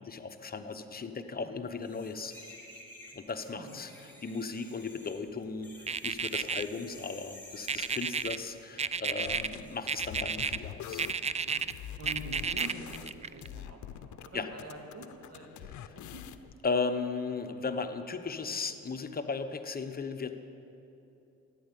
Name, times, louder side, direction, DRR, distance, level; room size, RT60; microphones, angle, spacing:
voice 1, 0.0-2.4 3.1-3.9 4.2-11.0 14.3-14.5 16.6-20.4, left 4 dB, 30° left, 7 dB, 1.0 m, -36 dB
sound 1, 1.8-8.7 9.6-9.8, left 1 dB, 5° left, 3.0 m, -52 dB
sound 2, 5.9-6.6 7.7-8.4 8.8-9.6 9.9-10.6 10.9-11.7 12.1-13.5, right 6 dB, 20° right, 0.4 m, -31 dB
sound 3, 9.2-9.6 10.0-14.3 14.6-16.5, left 10 dB, 75° left, 0.7 m, -44 dB
voice 2, 11.3-11.6 12.0-15.7 15.9-16.2, right 1 dB, 55° right, 1 dB, 2.7 m, -46 dB
14.0 x 10.0 x 8.4 m, 2.9 s
cardioid pair, 90°, 30 cm